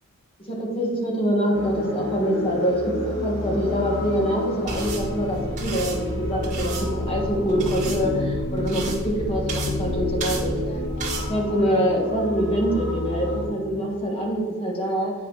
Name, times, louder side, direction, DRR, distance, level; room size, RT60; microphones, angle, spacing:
voice 1, 0.4-10.8 11.3-15.1, equal, 25° left, -2 dB, 1.6 m, -25 dB
sound 1, 1.5-13.5, left 1 dB, 55° left, 1.4 m, -30 dB
sound 2, 4.7-11.3, right 2 dB, 35° right, 1.6 m, -32 dB
8.8 x 5.4 x 3.0 m, 1.5 s
head